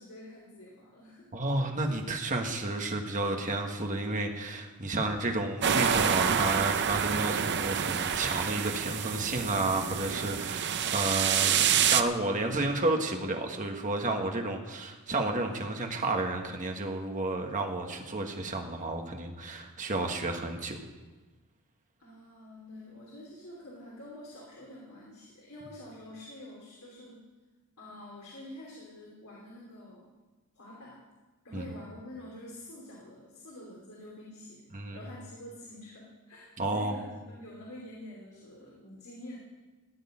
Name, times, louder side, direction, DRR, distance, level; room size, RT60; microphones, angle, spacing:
voice 1, 0.0-1.3 22.0-27.2 27.8-30.0 30.5-31.0 31.4-34.6 34.9-39.4, left 1 dB, 70° left, -4 dB, 3.0 m, -47 dB
voice 2, 1.3-20.8 31.5-31.6 34.7-35.0 36.6-37.0, right 2 dB, 35° right, 3 dB, 1.6 m, -31 dB
sound 1, 5.6-12.0, right 8 dB, 50° right, 0.7 m, -27 dB
15.5 x 6.6 x 9.8 m, 1.2 s
head